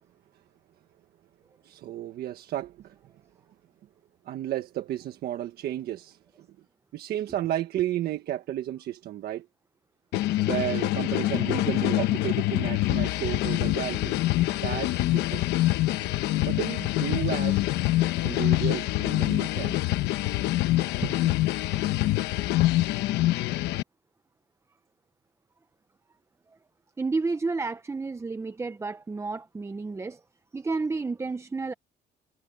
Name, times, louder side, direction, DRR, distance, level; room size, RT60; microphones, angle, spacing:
voice 1, 1.6-3.0 4.2-6.5 6.9-9.5 10.4-14.1 14.6-15.6 16.4-17.7 18.2-19.8 21.0-21.3, right 12 dB, 65° right, 1.4 m, -33 dB
sound 1, 10.1-23.8, left 16 dB, 85° left, 1.0 m, -25 dB
voice 2, 27.0-30.2 30.5-31.7, right 3 dB, 15° right, 0.7 m, -31 dB
cardioid pair, 110°, 17 cm